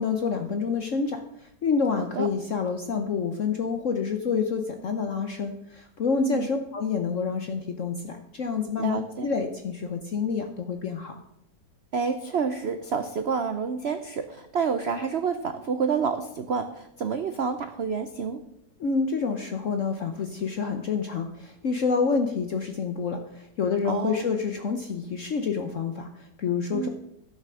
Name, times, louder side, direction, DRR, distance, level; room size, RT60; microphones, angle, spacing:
voice 1, 0.0-11.2 18.8-26.9, left 5 dB, 55° left, 6 dB, 1.0 m, -28 dB
voice 2, 2.0-2.3 6.1-6.5 8.8-9.3 11.9-18.4 23.8-24.3 26.7-26.9, right 6 dB, 65° right, 9 dB, 0.6 m, -29 dB
12.5 x 6.7 x 6.3 m, 0.79 s
omnidirectional pair, 1.9 m